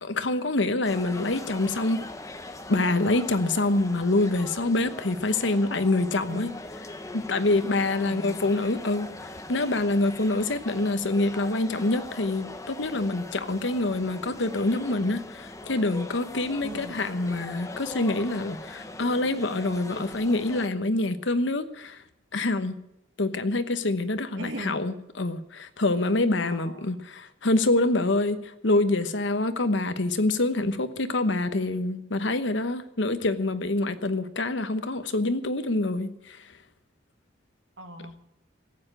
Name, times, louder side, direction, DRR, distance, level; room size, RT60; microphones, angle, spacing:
voice 1, 0.0-2.0 2.7-6.5 7.1-22.0 22.3-22.7 23.2-36.4, left 2 dB, 65° left, 10 dB, 1.0 m, -26 dB
sound 1, 0.8-20.7, left 2 dB, 15° left, 0.9 m, -41 dB
voice 2, 6.3-6.6 8.0-8.3 16.6-17.0 24.4-24.8 26.5-27.0 37.8-38.2, right 1 dB, 65° right, 4 dB, 2.1 m, -39 dB
14.5 x 9.0 x 8.8 m, 0.83 s
head